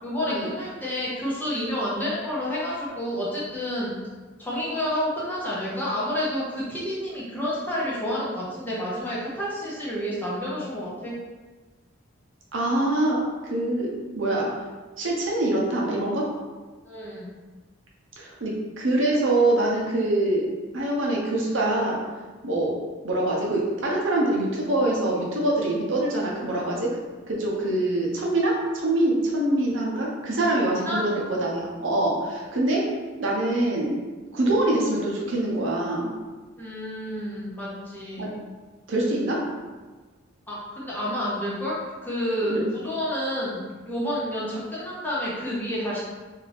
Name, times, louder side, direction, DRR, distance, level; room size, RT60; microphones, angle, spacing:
voice 1, 0.0-3.9 4.4-11.1 16.8-17.3 30.9-31.0 36.6-38.3 40.5-46.0, equal, 10° left, -8 dB, 0.7 m, -29 dB
voice 2, 12.5-14.5 15.0-16.3 18.2-20.5 20.7-22.0 22.4-22.8 23.0-26.9 27.3-32.8 33.2-33.9 34.3-36.1 38.2-38.3 38.9-39.4 42.5-42.6, right 1 dB, 75° right, -3 dB, 0.7 m, -24 dB
2.6 x 2.4 x 3.3 m, 1.3 s
head